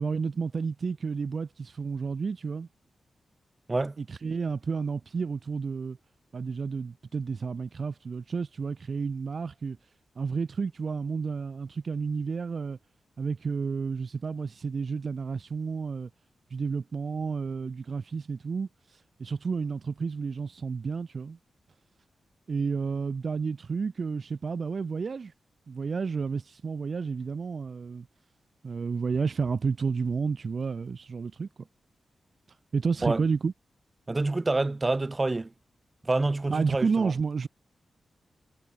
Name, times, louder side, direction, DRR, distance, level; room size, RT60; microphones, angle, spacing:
voice 1, 0.0-2.7 4.0-6.0 6.3-9.8 10.2-12.8 13.2-16.1 16.5-21.4 22.5-25.3 25.7-28.1 28.6-31.5 32.7-33.5 36.5-37.5, right 5 dB, 50° right, 0.7 m, -31 dB
voice 2, 34.1-35.5 36.0-37.1, right 2 dB, 25° right, 1.7 m, -27 dB
wide cardioid pair, 120°, 0 cm